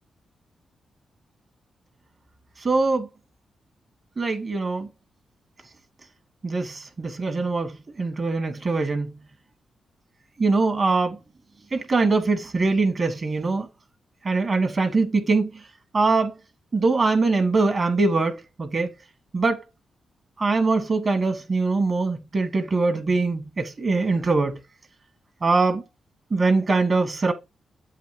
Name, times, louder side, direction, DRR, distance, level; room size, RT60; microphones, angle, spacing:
voice 1, 2.6-3.1 4.2-4.9 6.4-9.1 10.4-11.2 11.7-13.7 14.2-15.7 15.9-16.3 16.7-18.9 19.3-19.6 20.4-24.6 25.4-25.8 26.3-27.3, right 3 dB, 50° right, 1.6 m, -22 dB
7.6 x 2.9 x 5.9 m
supercardioid pair, 45°, 0 cm